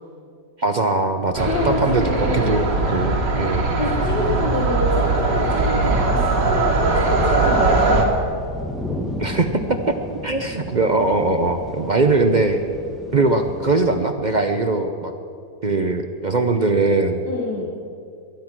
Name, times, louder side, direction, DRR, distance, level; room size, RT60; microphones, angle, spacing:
voice 1, 0.6-3.7 9.2-10.0 10.2-12.6 13.1-15.1 15.6-17.2, right 3 dB, 50° right, 6 dB, 0.5 m, -21 dB
sound 1, 1.3-8.0, right 3 dB, 85° right, 2.4 m, -20 dB
voice 2, 1.5-2.7 3.8-6.2 6.5-8.2 17.2-17.7, left 3 dB, 80° left, -1 dB, 2.0 m, -26 dB
sound 2, 5.8-14.0, left 1 dB, ahead, 1.2 m, -35 dB
22.0 x 10.5 x 6.1 m, 2.4 s
omnidirectional pair, 1.8 m